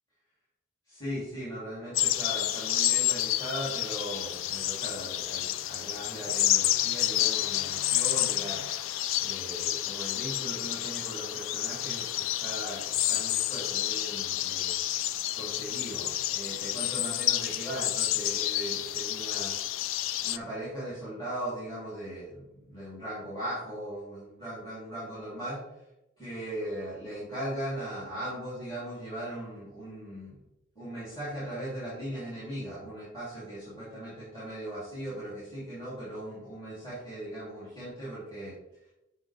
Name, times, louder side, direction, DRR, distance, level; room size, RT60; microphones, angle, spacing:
voice 1, 0.9-19.5 20.2-25.8 26.2-30.4 30.7-38.6, right 1 dB, 20° left, -10 dB, 2.9 m, -39 dB
sound 1, 1.9-20.4, left 13 dB, 75° left, 0.3 m, -29 dB
8.1 x 5.6 x 3.5 m, 0.92 s
head